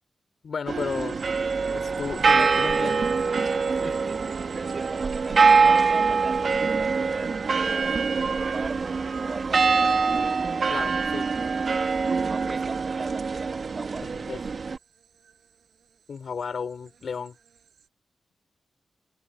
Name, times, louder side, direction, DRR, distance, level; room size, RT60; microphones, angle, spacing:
voice 1, 0.4-1.2 1.7-3.1 10.7-11.3 14.1-14.4 16.1-17.4, left 6 dB, 60° left, 5.8 m, -33 dB
sound 1, 0.7-14.8, right 4 dB, 50° right, 1.7 m, -24 dB
sound 2, 0.8-17.9, right 7 dB, 85° right, 7.0 m, -56 dB
voice 2, 3.8-10.1 12.3-14.1, right 3 dB, 35° right, 7.2 m, -40 dB
wide cardioid pair, 115°, 0 cm